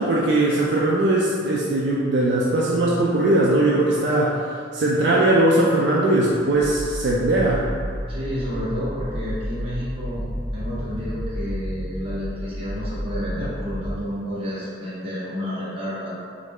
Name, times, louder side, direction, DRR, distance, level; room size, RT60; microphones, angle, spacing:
voice 1, 0.0-4.4 4.7-7.7, right 1 dB, 65° right, -4 dB, 0.3 m, -20 dB
sound 1, 6.7-14.0, equal, 25° left, 1.0 m, -31 dB
voice 2, 8.1-10.3 10.5-16.1, equal, 30° right, -10 dB, 1.1 m, -30 dB
3.1 x 2.5 x 3.5 m, 2.2 s
head